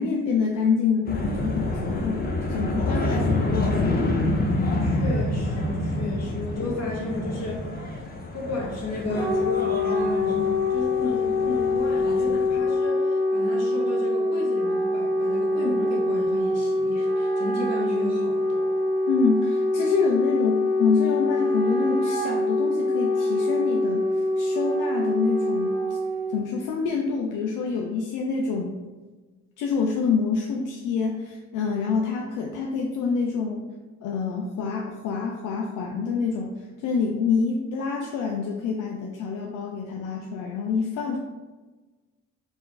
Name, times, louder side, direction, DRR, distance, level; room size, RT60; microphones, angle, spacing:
voice 1, 0.0-2.2 2.5-4.0 19.1-26.0 26.3-28.7 29.6-33.7 34.0-36.5 36.8-41.2, left 5 dB, 85° left, 1 dB, 0.5 m, -27 dB
sound 1, 1.1-12.6, left 1 dB, 30° left, 0.8 m, -28 dB
voice 2, 4.8-8.0 8.3-18.7, left 2 dB, 60° left, -2 dB, 1.4 m, -33 dB
Wind instrument woodwind instrument, 8.9-26.4, left 2 dB, 40° right, 1.2 m, -24 dB
4.4 x 2.6 x 3.8 m, 1.3 s
cardioid pair, 90°, 30 cm